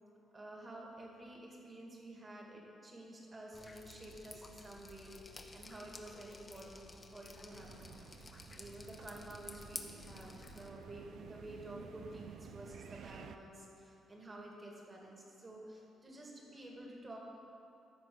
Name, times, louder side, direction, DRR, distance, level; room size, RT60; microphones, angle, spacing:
voice 1, 0.3-17.2, right 1 dB, 30° right, -1 dB, 2.1 m, -51 dB
Drip, 3.5-10.7, left 3 dB, 25° left, 0.8 m, -52 dB
sound 1, 7.5-13.4, right 7 dB, 70° right, 0.4 m, -53 dB
13.5 x 4.6 x 6.2 m, 2.7 s
cardioid pair, 90°, 0 cm